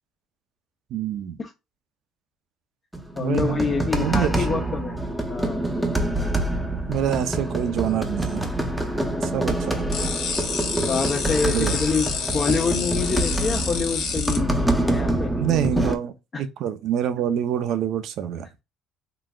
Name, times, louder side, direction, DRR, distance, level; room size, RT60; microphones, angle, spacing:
voice 1, 0.9-1.4 3.2-3.6 4.0-4.7 6.9-8.5 9.2-10.1 11.4-11.8 15.3-18.5, right 9 dB, 65° right, 0.5 m, -26 dB
sound 1, 2.9-16.0, right 1 dB, ahead, 0.7 m, -26 dB
voice 2, 3.2-5.0 5.3-5.7 10.9-14.5 14.9-15.7 16.3-16.4, left 5 dB, 35° left, 0.6 m, -26 dB
sound 2, 9.9-14.4, left 6 dB, 70° left, 1.1 m, -29 dB
3.9 x 2.4 x 2.3 m
supercardioid pair, 90°, 0 cm